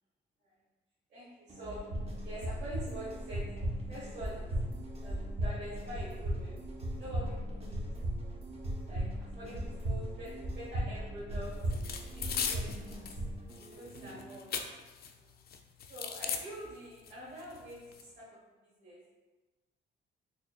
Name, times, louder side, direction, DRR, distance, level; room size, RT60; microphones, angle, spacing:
voice 1, 1.1-1.9 2.2-4.5 5.0-6.7 6.9-7.9 8.9-11.6 12.0-13.2 13.7-14.7 15.2-15.3 15.9-19.0, equal, 60° right, -10 dB, 1.3 m, -46 dB
sound 1, 1.5-14.4, equal, 30° right, 0.7 m, -49 dB
sound 2, 1.9-13.3, right 1 dB, 85° right, 1.0 m, -37 dB
sound 3, 11.7-13.2 13.5-15.1 15.5-16.4 17.1-17.2 17.4-18.0, left 7 dB, 50° left, 0.4 m, -38 dB
4.1 x 2.7 x 2.3 m, 1.2 s
cardioid pair, 90°, 20 cm